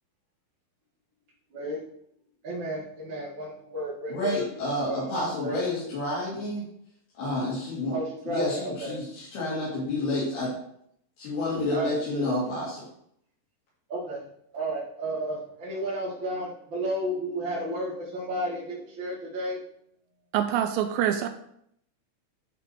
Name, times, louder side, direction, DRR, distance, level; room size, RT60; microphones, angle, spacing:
voice 1, 1.5-1.8 2.4-4.5 4.8-5.1 5.4-5.6 7.9-9.0 11.7-12.3 13.9-14.2 14.5-19.6, right 1 dB, 40° right, -6 dB, 2.0 m, -32 dB
voice 2, 4.1-6.6 7.2-8.0 8.3-10.5 11.2-12.8, left 2 dB, 75° left, -9 dB, 4.9 m, -29 dB
voice 3, 20.3-21.3, right 10 dB, 90° right, 6 dB, 2.0 m, -25 dB
11.0 x 4.9 x 4.7 m, 0.71 s
omnidirectional pair, 4.6 m